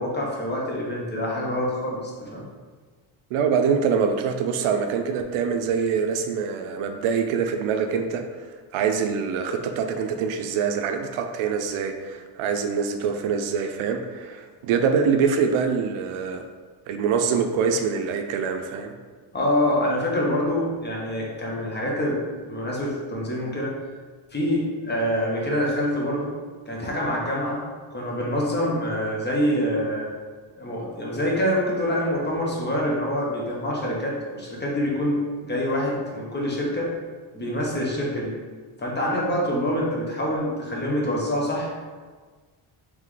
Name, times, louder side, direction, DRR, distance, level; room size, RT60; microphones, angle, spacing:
voice 1, 0.0-2.4 19.3-22.2 22.4-23.7 24.3-26.3 26.7-27.6 27.9-30.1 30.6-36.9 37.3-38.4 38.8-41.7, equal, 20° left, -4 dB, 1.0 m, -26 dB
voice 2, 3.3-16.4 16.9-18.9, right 6 dB, 75° right, 6 dB, 0.6 m, -24 dB
3.6 x 3.3 x 3.2 m, 1.5 s
cardioid pair, 105°, 50 cm